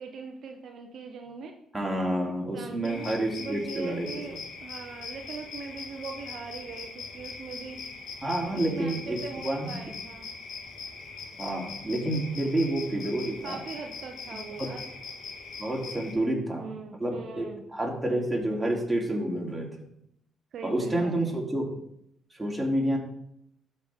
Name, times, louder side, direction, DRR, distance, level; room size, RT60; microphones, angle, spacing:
voice 1, 0.0-1.6 2.5-7.8 8.5-10.3 13.4-14.8 16.0-17.6 20.5-21.4, right 5 dB, 60° right, 4 dB, 0.7 m, -41 dB
voice 2, 1.7-4.4 8.2-9.8 11.4-13.6 14.6-14.7 15.6-16.7 17.0-19.9 20.6-21.6 22.3-23.0, right 1 dB, 10° right, -2 dB, 2.9 m, -29 dB
sound 1, 2.8-16.1, left 4 dB, 65° left, 1.6 m, -41 dB
12.5 x 4.5 x 3.5 m, 0.75 s
hypercardioid pair, 55°, 0 cm